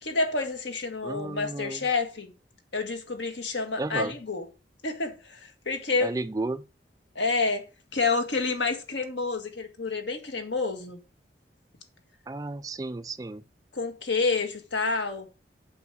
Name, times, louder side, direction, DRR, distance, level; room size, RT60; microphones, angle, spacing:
voice 1, 0.0-2.3 2.7-4.4 4.8-6.2 7.2-7.7 7.9-11.0 13.7-15.3, left 3 dB, 90° left, 1.8 m, -29 dB
voice 2, 1.0-1.9 3.8-4.2 6.0-6.7 12.3-13.4, right 2 dB, 20° right, 0.4 m, -33 dB
8.0 x 5.5 x 4.9 m
head